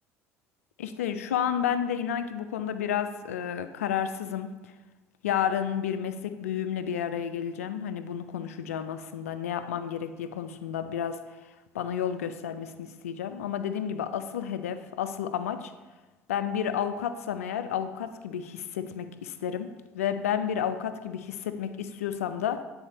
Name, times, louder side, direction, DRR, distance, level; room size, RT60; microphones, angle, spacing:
voice 1, 0.8-4.6 5.2-11.2 11.7-15.7 16.3-22.6, left 9 dB, 80° left, 11 dB, 0.4 m, -31 dB
8.5 x 4.1 x 4.0 m, 1.2 s
hypercardioid pair, 60°, 8 cm